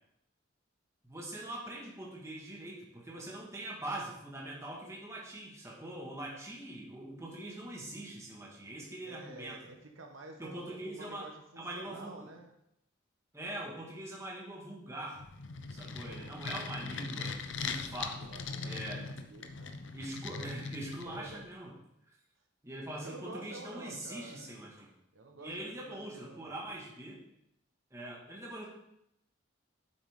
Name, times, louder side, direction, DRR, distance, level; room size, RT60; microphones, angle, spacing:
voice 1, 1.0-9.6 10.4-11.3 11.6-12.3 13.3-15.2 15.7-18.3 18.6-19.1 19.9-21.7 22.6-24.9 25.4-27.2 27.9-28.7, right 1 dB, 15° right, -3 dB, 1.8 m, -43 dB
voice 2, 9.0-12.5 16.0-16.3 18.2-19.7 21.0-21.4 23.0-24.5 25.1-26.6, right 2 dB, 85° right, 3 dB, 1.4 m, -50 dB
sound 1, 15.1-21.5, left 4 dB, 65° left, 0.7 m, -40 dB
9.7 x 7.9 x 3.7 m, 0.80 s
head